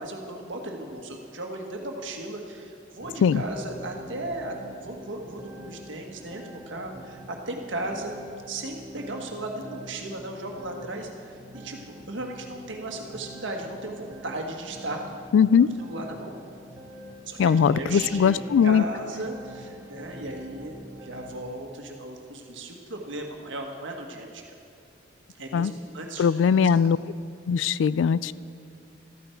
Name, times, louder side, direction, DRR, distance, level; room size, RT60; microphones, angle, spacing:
voice 1, 0.0-4.5 4.8-8.1 8.5-15.3 15.8-16.3 17.3-24.5 25.4-26.4 26.8-26.9, right 1 dB, 80° right, 2 dB, 1.6 m, -36 dB
sound 1, 3.0-21.4, right 1 dB, 15° right, 1.2 m, -45 dB
voice 2, 15.3-15.7 17.4-18.8 25.5-25.7 26.2-27.0 27.5-28.3, left 7 dB, 80° left, 19 dB, 0.3 m, -20 dB
14.0 x 13.5 x 4.5 m, 2.5 s
head